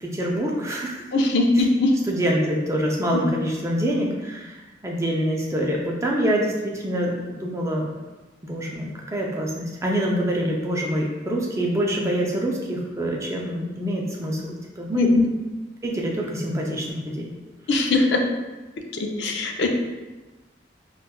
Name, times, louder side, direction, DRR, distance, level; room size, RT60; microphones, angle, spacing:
voice 1, 0.0-1.0 1.6-1.7 2.1-4.6 4.8-7.9 8.4-15.1 15.8-17.3, equal, 15° right, -2 dB, 0.4 m, -25 dB
voice 2, 1.1-1.9 3.1-3.3 14.9-15.2 17.7-18.2 18.9-19.7, left 2 dB, 70° left, 2 dB, 0.4 m, -20 dB
4.2 x 2.3 x 2.2 m, 1.2 s
head